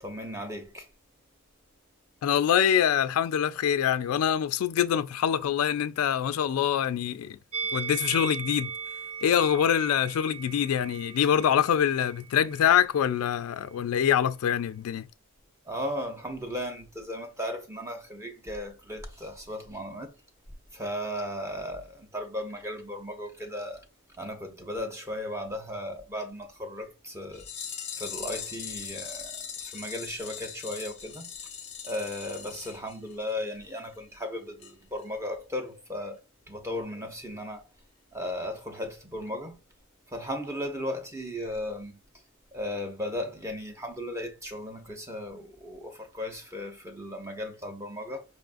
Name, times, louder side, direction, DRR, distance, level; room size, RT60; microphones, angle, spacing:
voice 1, 0.0-0.9 15.7-20.1 20.7-23.8 24.2-27.5 28.0-31.3 31.8-36.2 36.5-37.7 38.1-39.6 40.1-42.0 42.5-48.2, left 1 dB, 15° right, 0.7 m, -36 dB
voice 2, 2.2-7.4 7.7-8.7 9.2-15.1, left 9 dB, 90° left, 0.3 m, -25 dB
Musical instrument, 7.5-12.8 13.0-13.2, right 6 dB, 30° right, 0.3 m, -38 dB
sound 1, 27.3-33.5 33.8-33.9 34.1-34.2 34.6-34.7 35.0-35.1, left 7 dB, 30° left, 0.5 m, -40 dB
5.3 x 2.4 x 2.5 m
head